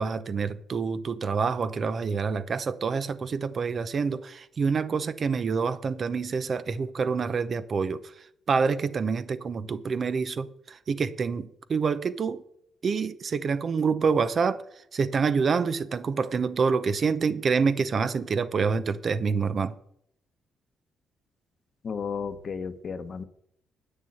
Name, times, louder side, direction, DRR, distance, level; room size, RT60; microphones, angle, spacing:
voice 1, 0.0-8.1 8.5-12.4 12.8-14.6 14.9-19.7, right 5 dB, 45° right, 0.8 m, -27 dB
voice 2, 21.8-23.2, left 6 dB, 50° left, 1.0 m, -33 dB
9.0 x 6.7 x 8.0 m
cardioid pair, 90°, 0 cm